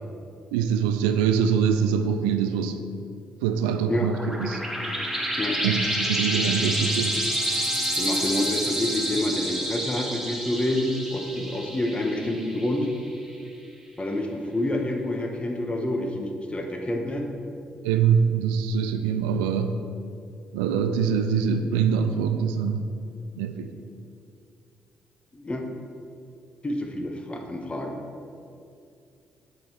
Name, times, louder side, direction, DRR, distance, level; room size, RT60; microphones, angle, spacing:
voice 1, 0.5-2.8 3.4-4.6 5.6-7.2 17.8-19.8 20.5-22.9 23.4-23.7, right 7 dB, 80° right, 8 dB, 0.3 m, -24 dB
sound 1, 3.8-13.0, equal, 5° right, 1.1 m, -29 dB
voice 2, 8.0-12.9 14.0-17.3 25.3-25.7 26.6-28.0, left 1 dB, 25° left, 3 dB, 0.9 m, -28 dB
7.6 x 3.9 x 4.3 m, 2.5 s
hypercardioid pair, 45°, 4 cm